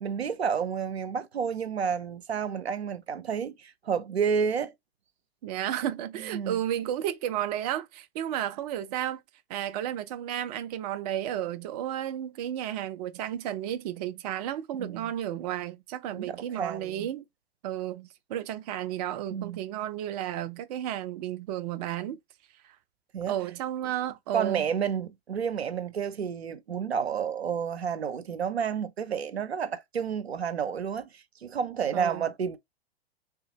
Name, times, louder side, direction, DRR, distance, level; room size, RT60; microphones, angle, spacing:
voice 1, 0.0-4.7 6.2-6.6 14.8-15.1 16.1-17.1 19.3-19.6 23.1-23.4 24.3-32.6, right 7 dB, 85° right, 0.6 m, -30 dB
voice 2, 5.4-9.2 9.5-17.3 17.6-22.2 22.6-22.8 23.3-24.6 31.9-32.2, right 11 dB, 40° right, 0.5 m, -33 dB
3.7 x 2.2 x 2.7 m
figure-of-eight pair, 110°, 31 cm